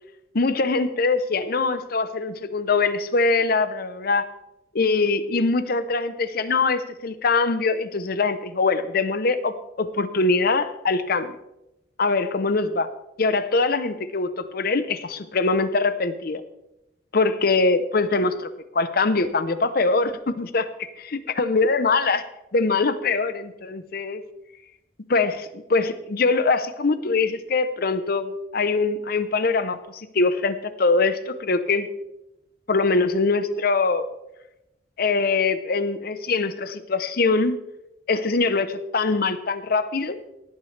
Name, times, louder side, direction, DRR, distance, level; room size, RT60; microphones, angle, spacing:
voice 1, 0.3-4.3 4.7-11.4 12.0-12.9 13.2-16.4 17.1-22.2 22.5-24.2 25.1-31.9 32.7-34.1 35.0-37.6 38.1-40.2, left 3 dB, 55° left, 12 dB, 0.7 m, -23 dB
18.0 x 8.8 x 3.3 m, 0.92 s
head